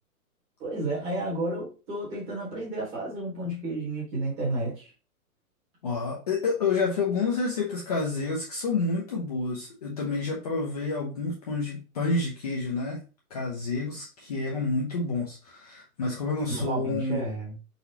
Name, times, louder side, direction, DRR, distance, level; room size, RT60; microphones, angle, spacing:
voice 1, 0.6-4.9 16.5-17.5, right 2 dB, 15° right, 1.4 m, -31 dB
voice 2, 5.8-13.0 13.3-17.2, left 3 dB, 25° left, 0.8 m, -29 dB
4.5 x 4.1 x 2.8 m
hypercardioid pair, 170°, 44 cm